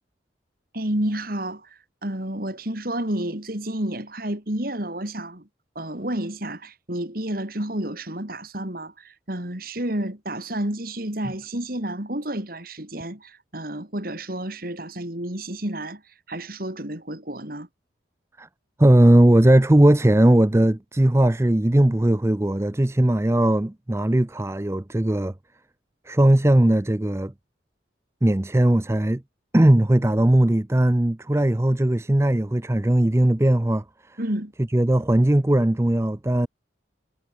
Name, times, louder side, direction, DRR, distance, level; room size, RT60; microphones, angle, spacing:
voice 1, 0.7-5.5 5.7-16.0 16.3-17.7 34.2-34.5, right 1 dB, 50° right, 3.3 m, -30 dB
voice 2, 18.8-25.3 26.1-27.3 28.2-29.2 29.5-33.8 34.7-36.5, right 1 dB, 15° right, 0.5 m, -18 dB
head